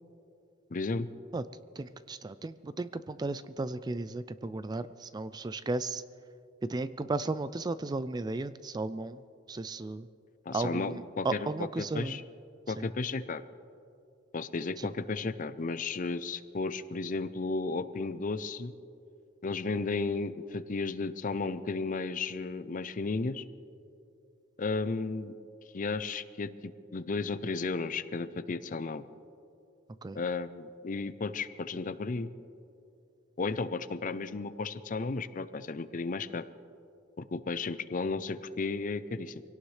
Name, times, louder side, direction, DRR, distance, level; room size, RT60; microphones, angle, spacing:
voice 1, 0.7-1.1 10.5-11.5 11.8-12.2 12.7-13.4 14.3-18.7 19.4-23.4 24.6-25.3 25.7-26.5 26.9-29.0 30.1-32.3 33.4-36.4 37.2-39.4, left 3 dB, 45° left, 13 dB, 0.5 m, -34 dB
voice 2, 1.8-6.0 6.7-9.2 9.5-10.1 10.5-12.2 12.8-12.9 14.8-14.9 30.0-30.2, right 3 dB, 20° right, 14 dB, 0.3 m, -35 dB
24.5 x 17.5 x 3.3 m, 2.7 s
head